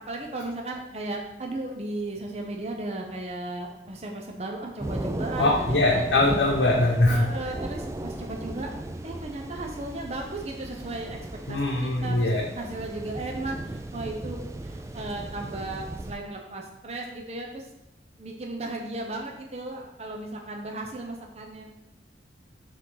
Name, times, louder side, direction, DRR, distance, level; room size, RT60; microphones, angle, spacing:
voice 1, 0.1-6.1 7.1-8.7 9.0-11.2 11.5-12.3 12.6-17.7 18.2-21.6, right 2 dB, 35° right, 1 dB, 0.7 m, -35 dB
sound 1, 4.8-16.1, right 1 dB, 15° right, 0.3 m, -36 dB
voice 2, 5.4-7.3 11.5-12.5, left 2 dB, 90° left, -3 dB, 0.9 m, -22 dB
5.1 x 3.9 x 5.6 m, 0.86 s
head